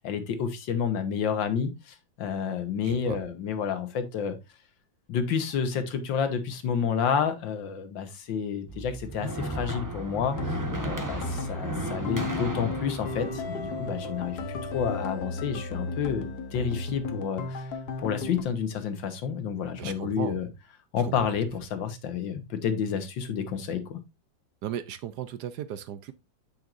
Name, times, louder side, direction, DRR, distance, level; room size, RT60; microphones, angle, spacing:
voice 1, 0.0-4.4 5.1-10.6 10.8-17.7 18.0-20.5 20.9-24.0, left 7 dB, 80° left, 1.9 m, -30 dB
voice 2, 2.8-3.2 19.8-20.4 24.6-26.1, right 10 dB, 70° right, 1.1 m, -36 dB
sound 1, 8.7-14.8, right 1 dB, 15° right, 0.8 m, -35 dB
sound 2, 10.2-18.4, left 3 dB, 60° left, 1.5 m, -34 dB
9.0 x 6.4 x 2.6 m
omnidirectional pair, 2.1 m